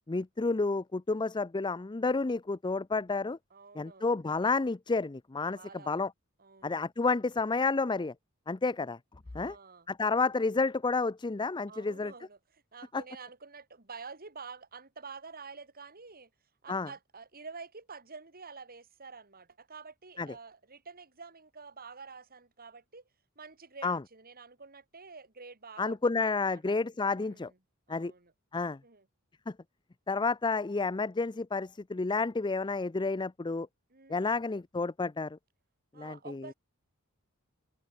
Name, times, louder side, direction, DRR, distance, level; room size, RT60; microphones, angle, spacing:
voice 1, 0.1-3.4 3.8-5.6 5.9-6.1 6.6-8.1 8.5-9.0 9.3-9.6 9.9-12.1 16.7-16.9 20.2-20.3 23.8-24.0 25.8-27.5 27.9-28.1 28.5-28.8 29.5-29.6 30.1-33.7 34.1-35.4 36.0-36.5, left 3 dB, 20° left, 0.5 m, -30 dB
voice 2, 3.5-4.1 5.5-5.9 6.4-6.9 9.3-9.9 11.7-16.3 16.6-23.0 23.4-26.8 27.1-27.6 27.9-28.3 28.8-29.1 33.9-34.4 35.9-36.5, right 4 dB, 45° right, 4.1 m, -49 dB
head